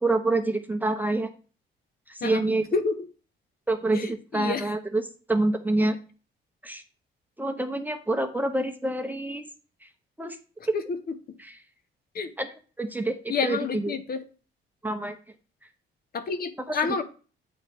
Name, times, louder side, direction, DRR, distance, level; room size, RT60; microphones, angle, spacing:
voice 1, 0.0-1.3 2.1-2.7 3.7-6.0 6.6-6.8 7.4-9.4 10.2-10.4 10.7-10.8 11.4-11.6 12.4-12.5 12.8-14.0 14.8-15.2 16.7-17.0, right 2 dB, 10° right, 0.7 m, -27 dB
voice 2, 3.9-4.7 10.7-10.8 11.3-11.4 12.1-12.3 13.3-14.2 16.1-17.0, left 5 dB, 50° left, 0.9 m, -29 dB
8.1 x 3.2 x 4.6 m
cardioid pair, 90°, 20 cm